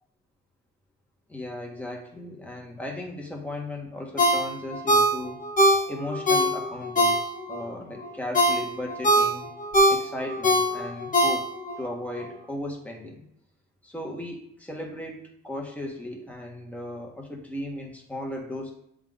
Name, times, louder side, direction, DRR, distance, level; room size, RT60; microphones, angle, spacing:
voice 1, 1.3-5.4 5.9-9.5 9.9-11.5 11.8-13.2 13.8-18.7, left 1 dB, 5° left, -1 dB, 1.7 m, -36 dB
Ringtone, 4.2-7.6 8.0-11.8 12.2-12.3, equal, 25° left, 1.2 m, -22 dB
7.2 x 3.8 x 3.9 m, 0.76 s
cardioid pair, 90°, 30 cm